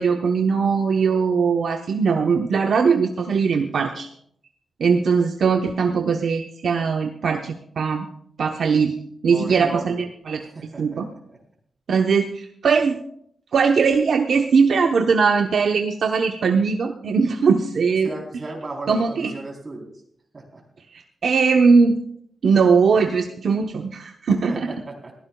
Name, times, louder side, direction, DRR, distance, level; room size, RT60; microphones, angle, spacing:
voice 1, 0.0-4.1 4.8-8.1 8.4-8.9 9.2-10.4 10.8-11.1 11.9-13.0 13.5-18.1 18.9-19.3 20.9-22.0 22.4-24.7, right 5 dB, 65° right, 3 dB, 0.9 m, -20 dB
voice 2, 9.3-10.0 10.4-11.4 18.0-19.9 20.3-20.6 24.5-25.1, right 2 dB, 30° right, 0 dB, 3.8 m, -35 dB
21.5 x 15.5 x 2.3 m, 0.67 s
wide cardioid pair, 155°, 0 cm